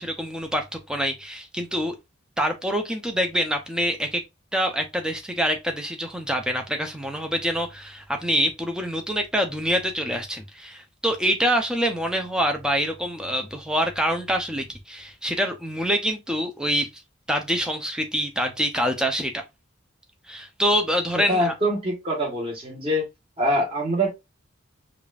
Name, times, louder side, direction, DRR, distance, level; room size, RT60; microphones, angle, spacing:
voice 1, 0.0-2.0 2.4-4.2 4.5-16.9 17.3-19.4 20.3-21.5, equal, 5° right, 0.5 m, -25 dB
voice 2, 21.1-23.1 23.4-24.1, equal, 25° right, 1.4 m, -24 dB
4.9 x 2.5 x 2.3 m
head